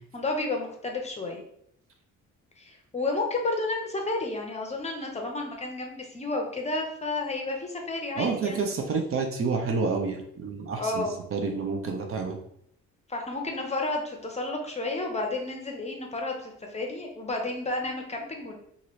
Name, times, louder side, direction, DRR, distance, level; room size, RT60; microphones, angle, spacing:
voice 1, 0.1-1.4 2.6-8.6 10.8-11.1 13.1-18.6, left 2 dB, 20° left, 2 dB, 0.6 m, -31 dB
voice 2, 8.2-11.1 11.3-12.4, right 4 dB, 45° right, 3 dB, 0.6 m, -29 dB
2.7 x 2.6 x 3.0 m, 0.71 s
cardioid pair, 90°, 30 cm